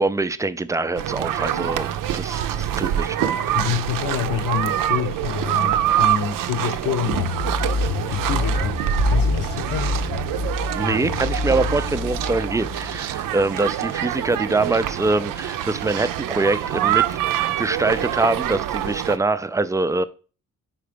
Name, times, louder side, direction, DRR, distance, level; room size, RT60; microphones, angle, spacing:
voice 1, 0.0-3.4 10.7-20.0, right 3 dB, 10° right, 0.3 m, -24 dB
sound 1, 1.0-19.2, right 11 dB, 90° right, 0.5 m, -25 dB
voice 2, 3.5-7.4 8.1-10.0, left 8 dB, 80° left, 1.1 m, -27 dB
sound 2, 7.1-13.0, left 3 dB, 35° left, 0.6 m, -26 dB
4.9 x 4.4 x 5.0 m
cardioid pair, 90°, 32 cm